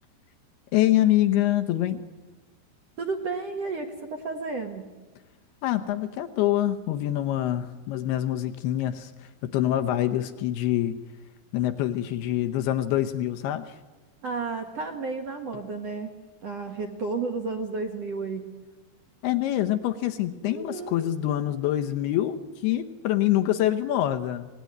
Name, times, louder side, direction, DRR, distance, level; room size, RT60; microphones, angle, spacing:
voice 1, 0.7-2.0 5.6-11.0 11.5-13.8 19.2-24.5, left 13 dB, 75° left, 7 dB, 2.6 m, -25 dB
voice 2, 3.0-4.9 14.2-16.1 16.4-18.4 20.4-21.0, right 4 dB, 60° right, 4 dB, 1.7 m, -32 dB
25.5 x 19.0 x 9.5 m, 1.3 s
omnidirectional pair, 5.1 m